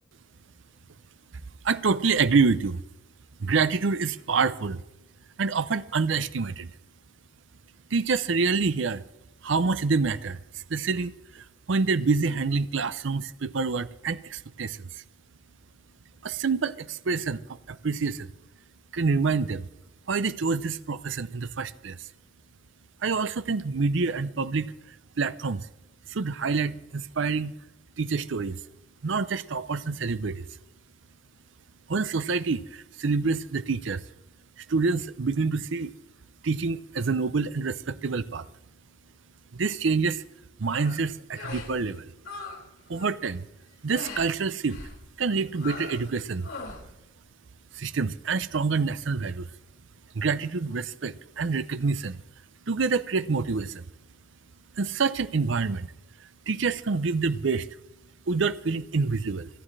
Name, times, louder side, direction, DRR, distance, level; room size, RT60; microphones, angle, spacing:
voice 1, 1.6-2.8 3.4-4.8 5.4-6.7 7.9-9.0 9.4-15.0 16.2-18.3 18.9-19.7 20.1-22.1 23.0-24.7 25.2-25.7 26.1-27.5 28.0-28.6 29.0-30.5 31.9-34.0 34.6-35.9 36.4-38.5 39.5-40.2 40.6-42.1 42.9-43.5 43.8-44.8 45.2-46.5 47.7-49.5 50.1-52.2 52.7-53.8 54.8-55.9 56.5-57.7 58.3-59.5, right 4 dB, 65° right, 0.6 m, -27 dB
sound 1, 40.6-41.0 41.3-41.7 42.0-42.6 42.9-43.2 43.9-44.3 44.7-45.0 45.6-46.1 46.4-46.8, left 3 dB, 80° left, 6.0 m, -40 dB
29.0 x 9.9 x 3.3 m
head